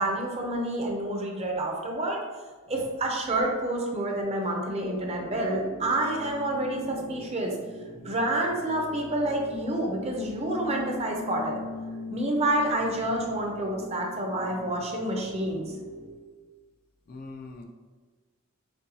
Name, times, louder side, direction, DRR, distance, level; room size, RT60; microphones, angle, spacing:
voice 1, 0.0-2.2 2.7-7.6 8.0-11.6 12.1-15.8, right 1 dB, 30° right, 0 dB, 0.6 m, -28 dB
sound 1, 4.8-16.1, left 1 dB, 65° left, 1.1 m, -41 dB
voice 2, 17.1-17.6, left 3 dB, 40° left, 3 dB, 0.4 m, -43 dB
6.6 x 2.3 x 2.7 m, 1.4 s
head